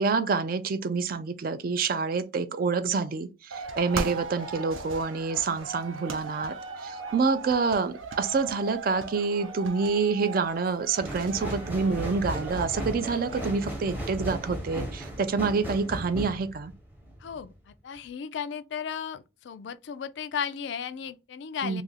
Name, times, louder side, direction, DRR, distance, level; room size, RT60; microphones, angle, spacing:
voice 1, 0.0-6.6 6.8-16.7 21.6-21.8, right 4 dB, 45° right, 0.3 m, -27 dB
sound 1, 3.5-13.6, right 4 dB, 80° right, 0.6 m, -38 dB
sound 2, 11.0-17.5 18.0-18.1, right 1 dB, 10° right, 0.6 m, -36 dB
voice 2, 17.2-17.5 17.8-21.8, left 7 dB, 60° left, 0.3 m, -35 dB
2.8 x 2.4 x 3.9 m
head